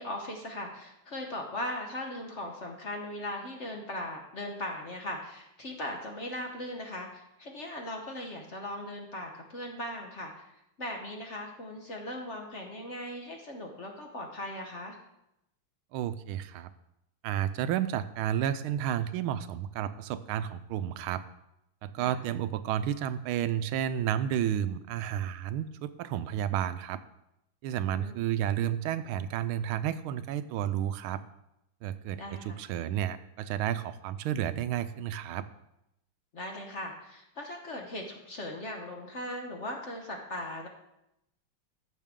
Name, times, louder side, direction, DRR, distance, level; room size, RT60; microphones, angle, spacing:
voice 1, 0.0-10.5 10.8-15.0 22.0-22.2 27.9-28.1 32.2-32.6 36.3-40.7, left 1 dB, 45° left, 2 dB, 1.0 m, -39 dB
voice 2, 15.9-16.7 17.2-21.2 21.8-27.0 27.6-31.2 31.8-35.4, right 10 dB, 80° right, 12 dB, 1.4 m, -31 dB
14.0 x 6.5 x 3.7 m, 0.84 s
omnidirectional pair, 2.3 m